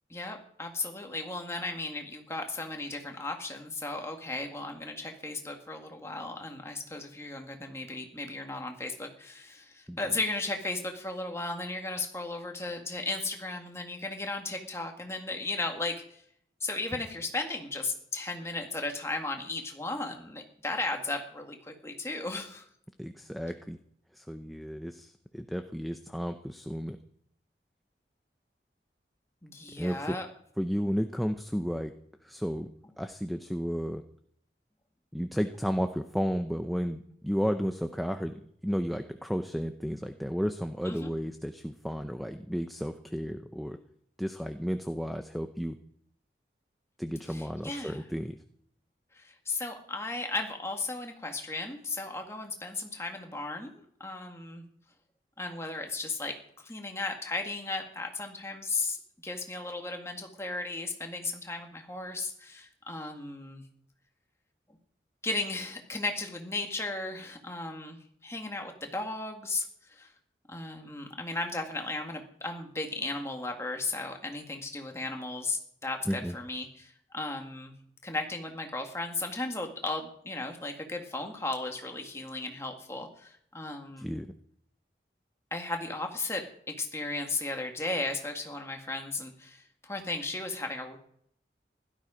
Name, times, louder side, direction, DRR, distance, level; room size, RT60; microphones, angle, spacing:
voice 1, 0.1-16.2 16.6-22.6 29.4-30.3 40.8-41.1 47.3-48.1 49.1-54.6 55.4-59.0 59.2-63.6 65.2-70.1 70.5-77.7 78.0-84.2 85.5-91.0, left 2 dB, 15° left, 3 dB, 2.0 m, -35 dB
voice 2, 23.0-23.8 24.1-27.0 29.8-30.2 30.6-31.9 32.2-32.7 33.0-34.0 35.1-38.3 38.6-43.8 44.2-45.8 47.0-48.4 76.1-76.4 84.0-84.3, equal, ahead, 6 dB, 0.6 m, -33 dB
16.0 x 12.5 x 5.1 m, 0.66 s
head